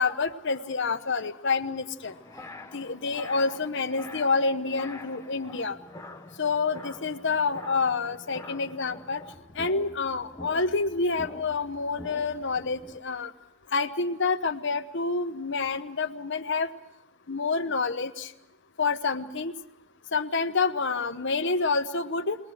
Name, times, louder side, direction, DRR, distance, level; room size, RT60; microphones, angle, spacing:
voice 1, 0.0-2.1 2.7-5.8 6.4-9.2 9.5-13.3 13.7-16.7 17.3-18.3 18.8-19.5 20.1-22.4, left 4 dB, 55° left, 7 dB, 1.1 m, -28 dB
sound 1, 2.1-13.0, left 2 dB, 15° left, 1.0 m, -45 dB
21.0 x 20.5 x 7.8 m, 0.89 s
head